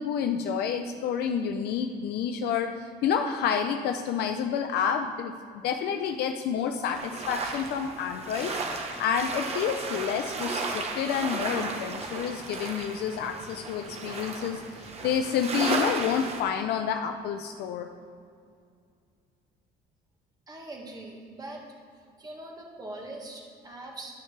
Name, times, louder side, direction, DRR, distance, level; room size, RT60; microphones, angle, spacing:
voice 1, 0.0-5.3 5.6-17.9, left 7 dB, 75° left, 6 dB, 0.5 m, -29 dB
sound 1, 6.9-16.4, right 3 dB, 40° right, 1.2 m, -34 dB
voice 2, 20.5-21.6 22.2-24.1, right 2 dB, 25° right, 0 dB, 1.7 m, -42 dB
12.5 x 6.4 x 3.3 m, 2.3 s
cardioid pair, 110°, 17 cm